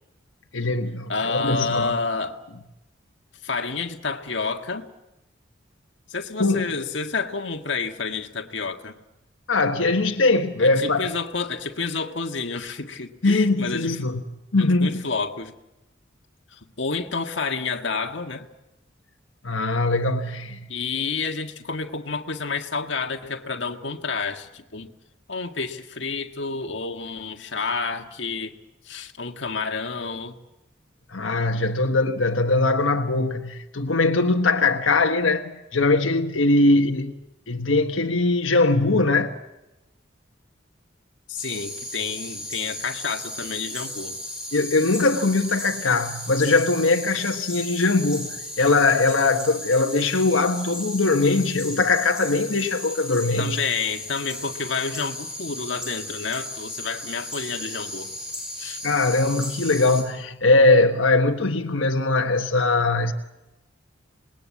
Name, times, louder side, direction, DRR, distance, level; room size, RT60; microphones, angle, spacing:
voice 1, 0.5-1.9 6.4-6.7 9.5-11.1 13.2-14.2 14.5-15.0 19.4-20.7 31.1-37.1 37.5-39.3 44.5-53.6 58.8-63.1, left 3 dB, 90° left, 1.4 m, -21 dB
voice 2, 1.1-2.4 3.4-4.9 6.1-9.0 10.6-14.1 14.6-15.5 16.5-18.5 20.7-24.9 25.3-28.6 28.9-30.4 41.3-44.2 53.4-58.1 58.6-58.8, left 4 dB, 70° left, 1.7 m, -29 dB
sound 1, 41.4-60.0, left 1 dB, 5° right, 5.9 m, -35 dB
27.5 x 20.5 x 8.5 m
head